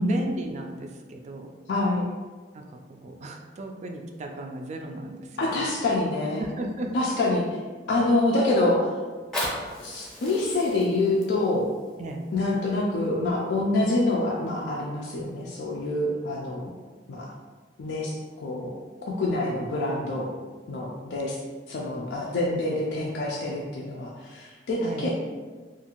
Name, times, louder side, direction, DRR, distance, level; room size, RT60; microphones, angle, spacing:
voice 1, 0.0-1.5 2.5-5.8 6.4-6.9 12.0-12.3 24.8-25.1, right 1 dB, 40° right, 3 dB, 0.3 m, -35 dB
voice 2, 1.7-2.1 5.4-6.4 6.9-7.5 7.9-8.9 9.8-11.7 12.3-16.7 17.1-17.3 17.8-18.7 19.2-20.3 20.7-21.4 21.7-25.1, left 2 dB, 70° left, -3 dB, 0.4 m, -26 dB
Fire, 9.1-14.0 14.7-14.8, left 1 dB, 5° left, 0.6 m, -37 dB
2.6 x 2.4 x 2.9 m, 1.4 s
head